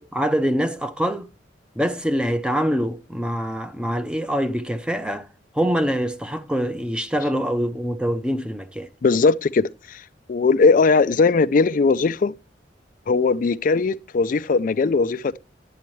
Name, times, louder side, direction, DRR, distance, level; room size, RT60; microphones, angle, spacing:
voice 1, 0.1-1.3 1.8-5.3 5.5-8.9, equal, 5° right, 0.7 m, -24 dB
voice 2, 9.0-10.0 10.3-12.3 13.1-15.4, left 4 dB, 50° left, 0.4 m, -19 dB
10.5 x 8.6 x 3.1 m
head